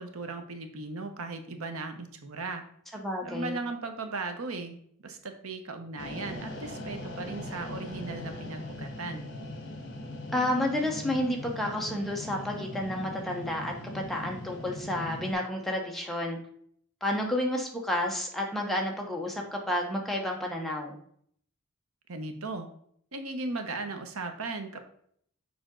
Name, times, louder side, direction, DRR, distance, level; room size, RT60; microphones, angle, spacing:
voice 1, 0.0-2.6 3.2-4.8 5.0-9.3 22.1-22.7 23.1-24.8, right 3 dB, 90° right, 7 dB, 1.0 m, -37 dB
voice 2, 2.9-3.6 10.3-16.4 17.0-21.0, left 1 dB, ahead, 0 dB, 1.0 m, -31 dB
sound 1, 6.0-15.3, left 1 dB, 55° left, 1.4 m, -40 dB
6.9 x 5.1 x 3.8 m, 0.64 s
head